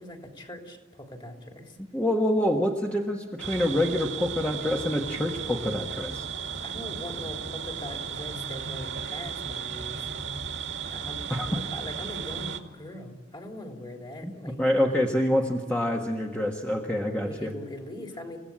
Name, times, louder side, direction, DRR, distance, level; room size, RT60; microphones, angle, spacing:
voice 1, 0.0-1.8 6.6-10.1 10.9-11.2 11.4-14.6 17.2-18.4, left 1 dB, 25° left, 2 dB, 3.4 m, -41 dB
voice 2, 1.9-6.2 11.3-11.5 14.2-14.3 14.6-17.5, left 1 dB, 10° left, 0 dB, 1.5 m, -26 dB
sound 1, 3.4-12.6, right 6 dB, 70° right, 2.1 m, -35 dB
29.5 x 17.0 x 8.8 m, 1.4 s
head